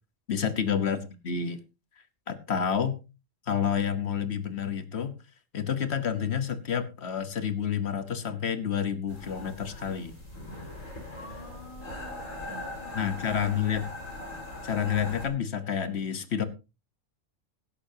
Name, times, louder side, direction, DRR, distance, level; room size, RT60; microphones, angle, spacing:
voice 1, 0.3-1.6 2.3-3.0 3.5-5.1 5.5-10.2 12.9-13.9 14.6-16.4, left 8 dB, 55° left, 12 dB, 1.4 m, -29 dB
sound 1, 9.1-15.3, left 2 dB, 85° left, 5.1 m, -40 dB
voice 2, 11.1-13.7, equal, 40° left, 2 dB, 2.4 m, -49 dB
17.0 x 11.5 x 2.8 m, 0.28 s
omnidirectional pair, 1.3 m